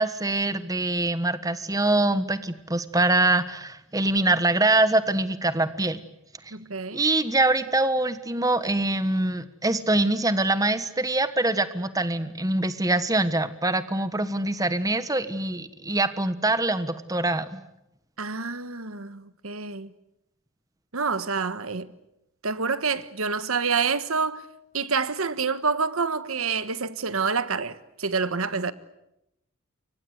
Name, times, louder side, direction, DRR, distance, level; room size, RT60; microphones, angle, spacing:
voice 1, 0.0-6.0 6.9-17.6, right 2 dB, 15° right, 1.3 m, -24 dB
voice 2, 6.5-7.0 18.2-19.9 20.9-21.9 22.4-24.4 24.7-28.7, right 5 dB, 80° right, 1.4 m, -27 dB
29.0 x 24.5 x 8.0 m
head